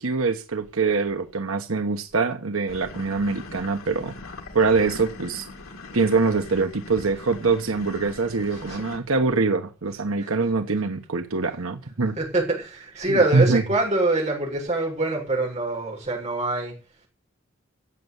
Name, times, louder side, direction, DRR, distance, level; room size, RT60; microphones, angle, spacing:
voice 1, 0.0-4.1 4.5-5.5 5.9-12.1 13.1-13.6, right 4 dB, 90° right, 7 dB, 1.2 m, -24 dB
sound 1, 2.7-9.0, left 3 dB, 90° left, 2.5 m, -41 dB
voice 2, 8.5-8.8 10.2-10.5 12.2-16.8, right 2 dB, 35° right, -2 dB, 7.0 m, -25 dB
15.0 x 8.3 x 8.1 m, 0.36 s
head